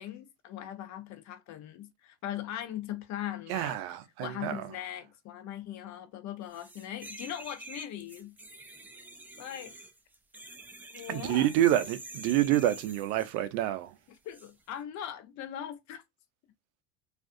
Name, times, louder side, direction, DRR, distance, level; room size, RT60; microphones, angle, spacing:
voice 1, 0.0-3.8 4.2-8.3 9.4-9.7 10.9-11.5 14.2-16.0, left 11 dB, 50° left, 0.7 m, -40 dB
voice 2, 3.5-4.7 11.1-13.9, right 13 dB, 60° right, 0.5 m, -28 dB
sound 1, 6.5-13.4 14.3-14.5, right 2 dB, 5° right, 0.3 m, -47 dB
2.4 x 2.3 x 2.6 m
hypercardioid pair, 80°, 37 cm